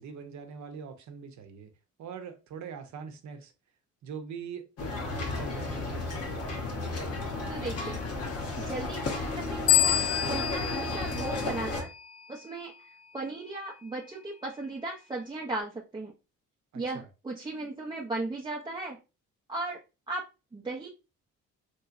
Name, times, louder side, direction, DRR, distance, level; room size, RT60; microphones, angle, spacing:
voice 1, 0.0-1.7 2.0-3.5 4.0-6.6 16.7-17.1, right 6 dB, 70° right, 0.7 m, -43 dB
sound 1, 4.8-11.8, left 2 dB, 55° left, 1.0 m, -33 dB
voice 2, 7.5-8.0 8.6-9.9 10.3-11.9 12.3-12.7 13.1-16.1 16.7-19.0 19.5-19.8 20.1-20.2 20.5-20.9, right 2 dB, 15° right, 0.5 m, -36 dB
sound 2, 9.7-12.2, left 13 dB, 80° left, 0.4 m, -28 dB
2.9 x 2.8 x 2.5 m
cardioid pair, 90°, 30 cm